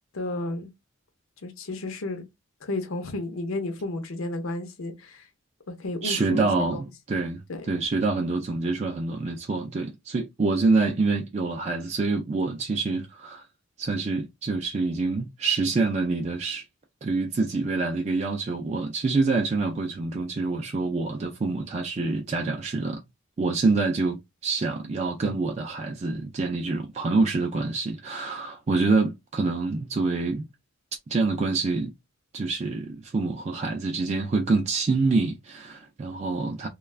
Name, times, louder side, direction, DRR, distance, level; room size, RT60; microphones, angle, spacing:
voice 1, 0.1-0.7 1.4-2.3 2.6-5.2 5.7-6.7 7.5-7.6, left 2 dB, 75° left, 0.7 m, -32 dB
voice 2, 6.0-7.4 7.7-13.4 13.8-16.6 17.0-23.0 23.4-30.4 31.1-31.9 32.3-36.7, right 3 dB, 30° right, 0.4 m, -26 dB
2.3 x 2.3 x 3.2 m
head